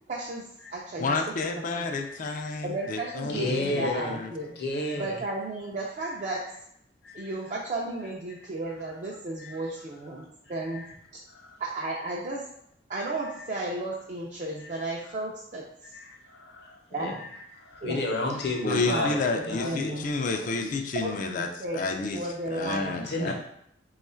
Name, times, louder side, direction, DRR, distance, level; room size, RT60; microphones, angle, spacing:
voice 1, 0.1-0.4 0.7-1.9 2.6-4.5 5.0-6.4 7.1-10.8 11.6-12.4 12.9-15.9 16.9-17.1 17.8-18.0 18.7-20.1 20.9-21.8 22.1-23.0, right 2 dB, 40° right, -3 dB, 0.5 m, -34 dB
voice 2, 1.0-4.3 18.7-21.5 21.7-22.2 22.5-23.3, left 3 dB, 45° left, 4 dB, 0.4 m, -30 dB
voice 3, 1.8-2.2 2.8-2.9 3.3-4.1 4.5-5.2 6.1-6.2 7.0-7.3 9.4-9.6 10.7-10.9 11.3-11.6 12.0-12.1 14.6-14.8 15.1-15.2 15.9-17.3 17.6-20.0 20.3-20.5 22.8-23.3, left 2 dB, 65° left, 0 dB, 0.8 m, -33 dB
3.0 x 2.4 x 4.2 m, 0.73 s
head